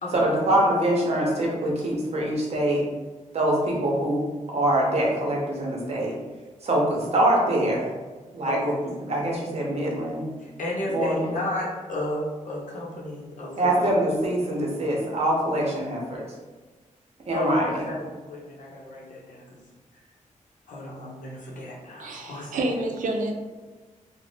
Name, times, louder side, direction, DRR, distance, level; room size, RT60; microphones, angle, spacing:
voice 1, 0.1-2.8 3.3-4.2 4.5-6.1 6.6-7.9 8.3-8.7 9.0-10.3 10.9-11.2 13.6-16.2 17.3-17.8, right 1 dB, 50° right, -2 dB, 0.7 m, -24 dB
voice 2, 8.4-8.9 10.4-13.8 17.3-19.4 20.7-22.6, left 1 dB, 75° left, -4 dB, 0.7 m, -33 dB
voice 3, 22.0-23.3, right 2 dB, 85° right, 3 dB, 0.4 m, -28 dB
2.6 x 2.0 x 3.3 m, 1.3 s
wide cardioid pair, 165°, 13 cm